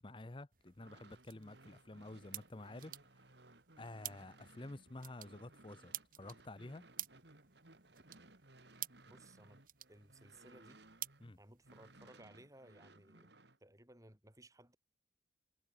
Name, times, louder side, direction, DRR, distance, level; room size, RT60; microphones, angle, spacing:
voice 1, 0.0-2.9 3.8-6.8 11.2-11.4, left 2 dB, 25° left, 0.7 m, -50 dB
sound 1, 0.5-12.0, right 14 dB, 45° right, 2.8 m, -52 dB
Sliding Chair or Table, 0.7-11.3 11.6-13.6, right 2 dB, 65° right, 3.2 m, -62 dB
voice 2, 9.0-9.6 9.9-10.8 11.4-13.3 13.6-14.8, right 1 dB, 20° right, 6.0 m, -60 dB
head